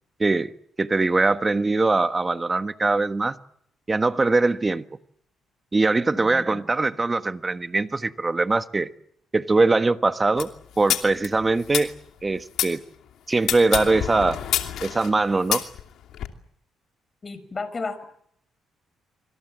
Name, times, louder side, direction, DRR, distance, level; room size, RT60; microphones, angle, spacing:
voice 1, 0.2-0.5 0.8-3.3 3.9-4.8 5.7-8.9 9.3-10.5 10.8-11.9 12.2-12.8 13.3-14.4 14.8-15.6, right 3 dB, 25° right, 10 dB, 1.4 m, -22 dB
voice 2, 6.1-6.7 17.2-18.0, left 3 dB, 30° left, 13 dB, 5.8 m, -33 dB
sound 1, 10.4-12.7 13.4-16.3, left 10 dB, 75° left, 2.8 m, -28 dB
26.0 x 26.0 x 7.6 m, 0.69 s
cardioid pair, 90°, 0 cm